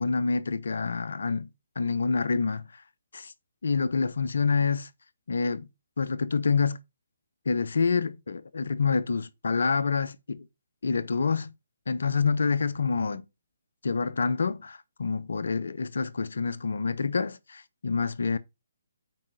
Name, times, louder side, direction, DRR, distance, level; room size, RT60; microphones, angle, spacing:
voice 1, 0.0-1.5 1.8-2.7 3.1-3.3 3.6-4.9 5.3-5.7 6.0-6.8 7.5-10.5 10.8-11.5 11.9-13.2 13.8-18.4, left 4 dB, 65° left, 0.8 m, -27 dB
7.6 x 4.9 x 5.8 m
figure-of-eight pair, 135°, 0 cm